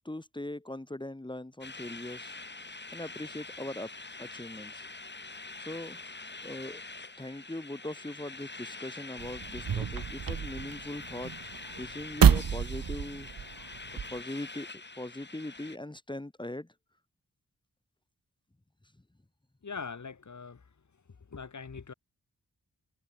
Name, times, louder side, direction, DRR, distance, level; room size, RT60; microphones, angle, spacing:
voice 1, 0.0-2.4 2.9-3.9 4.2-4.9 5.6-6.8 7.2-13.3 14.1-14.7 15.0-16.7, left 1 dB, 15° left, 2.6 m, -40 dB
sound 1, 1.6-15.8, left 3 dB, 30° left, 6.4 m, -45 dB
sound 2, 9.2-14.2, right 7 dB, 85° right, 1.9 m, -28 dB
voice 2, 19.6-20.6 21.3-21.9, left 5 dB, 55° left, 4.4 m, -41 dB
wide cardioid pair, 135°, 34 cm